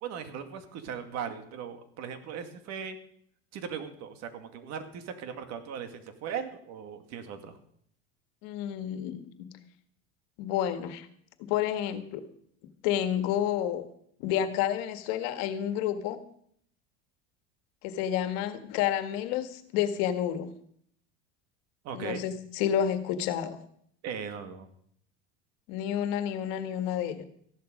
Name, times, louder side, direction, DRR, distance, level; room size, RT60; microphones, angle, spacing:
voice 1, 0.0-3.0 3.5-7.6 21.8-22.2 24.0-24.7, right 7 dB, 55° right, 8 dB, 2.2 m, -38 dB
voice 2, 8.4-9.5 10.4-11.1 11.4-12.2 12.8-13.8 14.2-16.2 17.8-20.5 21.9-23.6 25.7-27.3, left 10 dB, 70° left, 10 dB, 1.7 m, -30 dB
14.5 x 11.0 x 5.2 m, 0.65 s
supercardioid pair, 120°, 32 cm